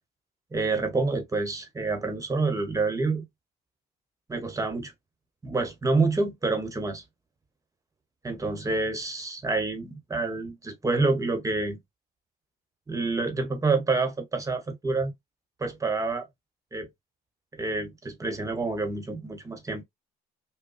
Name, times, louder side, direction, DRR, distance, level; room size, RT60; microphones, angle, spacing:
voice 1, 0.5-3.2 4.3-4.9 5.4-7.0 8.2-11.8 12.9-15.1 15.6-16.3 16.7-16.9 17.6-19.8, right 3 dB, 20° right, 1.2 m, -28 dB
5.3 x 2.3 x 2.5 m
cardioid pair, 110°, 17 cm